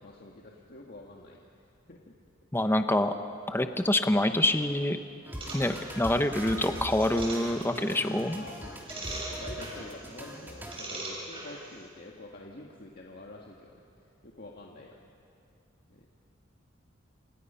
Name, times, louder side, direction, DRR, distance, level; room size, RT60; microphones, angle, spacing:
voice 1, 0.0-1.4 1.9-2.1 8.4-13.8 14.2-15.0 15.9-16.1, left 2 dB, 50° left, -1 dB, 1.8 m, -47 dB
voice 2, 2.5-3.1 3.5-5.0 5.5-8.4, left 1 dB, 10° left, 7 dB, 0.9 m, -26 dB
sound 1, 5.3-10.8, equal, 10° right, 2.9 m, -41 dB
sound 2, 5.4-11.9, right 2 dB, 25° right, 6.9 m, -43 dB
28.5 x 27.0 x 5.7 m, 2.5 s
head